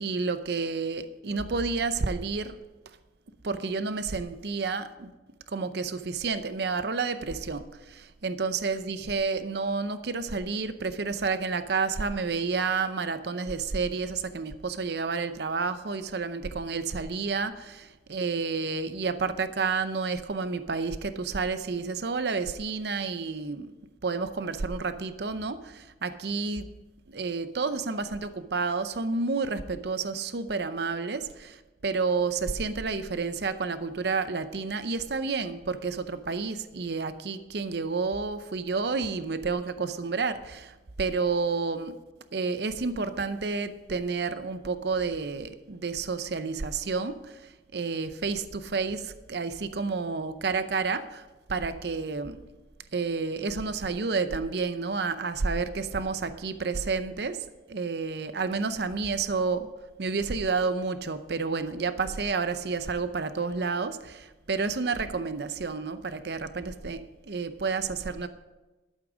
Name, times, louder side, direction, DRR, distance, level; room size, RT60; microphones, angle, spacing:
voice 1, 0.0-2.6 3.4-5.1 5.5-23.7 24.0-26.7 27.1-41.9 42.3-52.4 52.9-59.7 60.0-68.3, right 4 dB, 65° right, 11 dB, 0.6 m, -30 dB
12.0 x 8.3 x 5.1 m, 1.1 s
head